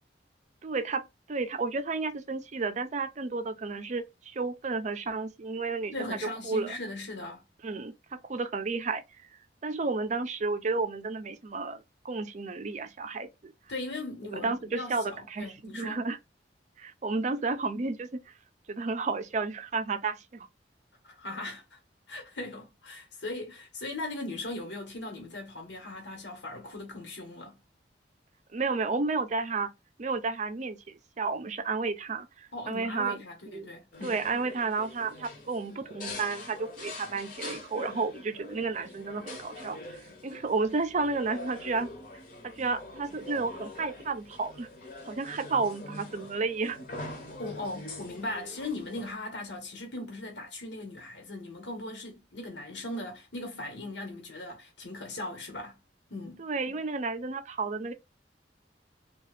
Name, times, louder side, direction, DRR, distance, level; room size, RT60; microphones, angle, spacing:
voice 1, 0.6-6.2 6.4-6.8 7.6-9.0 9.6-13.5 14.4-16.2 16.8-18.2 18.7-20.5 28.5-29.7 30.0-33.2 33.5-33.7 34.0-41.9 42.4-44.7 45.1-46.8 56.4-57.9, right 4 dB, 40° right, 0.5 m, -32 dB
voice 2, 5.9-7.4 13.7-16.0 21.0-21.8 22.1-27.6 32.5-34.2 47.4-55.8 56.1-56.5, left 2 dB, 80° left, 1.2 m, -39 dB
sound 1, 33.9-49.1, left 2 dB, 50° left, 0.9 m, -44 dB
2.8 x 2.3 x 3.2 m
head